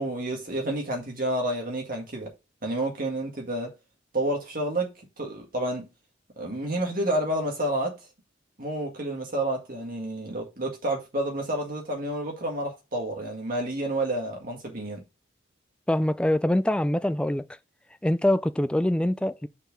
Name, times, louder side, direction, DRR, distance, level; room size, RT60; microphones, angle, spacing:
voice 1, 0.0-2.3 2.6-3.7 4.1-4.9 5.2-5.9 6.4-8.0 8.6-15.0, right 1 dB, 45° right, 1.9 m, -29 dB
voice 2, 15.9-17.5 18.0-19.5, left 1 dB, 5° left, 0.3 m, -24 dB
5.7 x 4.7 x 5.2 m
head